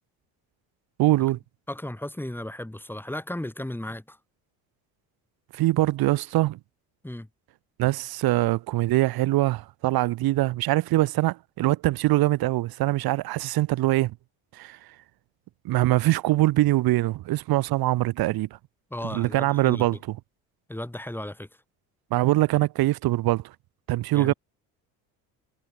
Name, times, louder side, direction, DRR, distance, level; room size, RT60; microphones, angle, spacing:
voice 1, 1.0-1.4 5.5-6.6 7.8-14.1 14.5-14.8 15.6-18.5 19.1-20.0 22.1-23.5 23.9-24.3, right 17 dB, 70° right, 3.4 m, -23 dB
voice 2, 1.7-4.2 7.0-7.3 18.9-19.9 20.7-21.5 24.1-24.3, left 1 dB, 5° left, 5.9 m, -35 dB
supercardioid pair, 95°, 38 cm